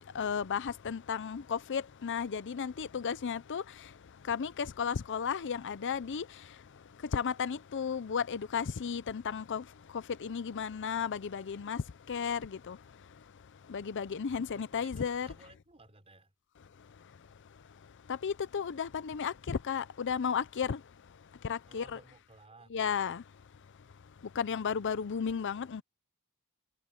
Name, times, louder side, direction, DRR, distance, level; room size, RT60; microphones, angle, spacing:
voice 1, 0.1-3.6 4.3-6.3 7.1-9.6 9.9-12.8 13.7-15.3 18.1-20.8 21.4-22.0 22.7-23.2 24.4-25.8, left 6 dB, 55° left, 0.5 m, -34 dB
voice 2, 14.2-16.3 21.6-22.8 24.4-25.0, right 2 dB, 25° right, 4.5 m, -59 dB
head